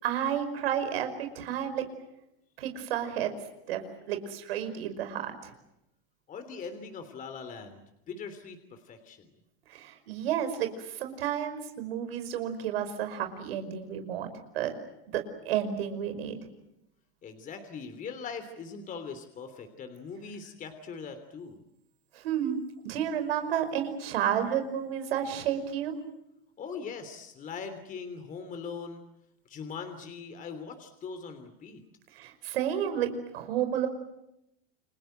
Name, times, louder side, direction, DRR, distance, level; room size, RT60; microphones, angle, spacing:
voice 1, 0.0-1.8 2.6-3.3 3.7-5.5 9.7-14.7 15.1-16.4 22.1-22.6 22.8-25.9 32.1-33.9, right 9 dB, 85° right, 7 dB, 5.4 m, -31 dB
voice 2, 6.3-9.3 17.2-21.6 26.6-29.0 29.4-31.8, left 5 dB, 25° left, 8 dB, 3.2 m, -41 dB
29.5 x 23.5 x 7.9 m, 0.83 s
supercardioid pair, 145°, 29 cm